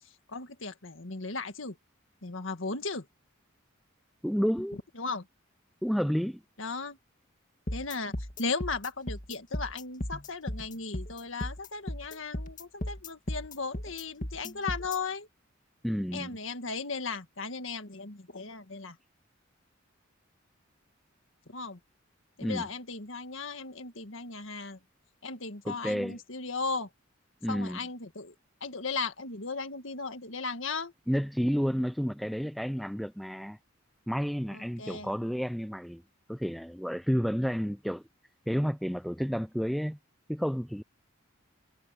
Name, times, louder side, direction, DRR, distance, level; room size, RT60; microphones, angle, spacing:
voice 1, 0.0-1.8 2.2-3.1 5.0-5.3 6.6-7.0 7.7-15.3 16.1-19.0 21.5-21.8 22.4-24.8 25.2-26.9 27.5-28.3 28.6-30.9 34.5-35.1, left 4 dB, 70° left, 1.9 m, -36 dB
voice 2, 4.2-4.8 5.8-6.4 15.8-16.3 22.4-22.7 25.6-26.2 27.4-27.8 31.1-33.6 34.1-36.0 36.3-38.0 38.5-40.0 40.3-40.8, equal, ahead, 0.4 m, -30 dB
sound 1, 7.7-15.0, left 1 dB, 40° left, 2.2 m, -36 dB
head